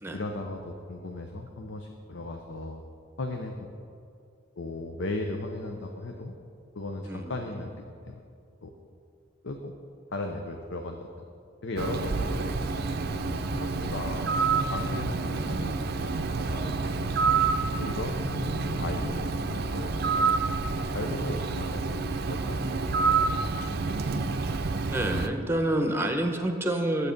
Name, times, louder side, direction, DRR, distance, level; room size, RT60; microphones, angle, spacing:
voice 1, 0.1-2.8 3.2-3.8 4.6-6.4 6.7-8.2 8.6-8.7 9.4-9.7 10.1-11.3 11.6-12.5 13.1-17.2 17.7-20.4 20.9-23.3 23.6-23.9, left 2 dB, 70° left, 3 dB, 0.7 m, -37 dB
voice 2, 7.0-7.6 24.9-27.1, right 1 dB, 10° right, 5 dB, 0.9 m, -28 dB
Bird, 11.8-25.3, right 4 dB, 50° right, 0.5 m, -28 dB
11.0 x 8.3 x 5.2 m, 2.3 s
head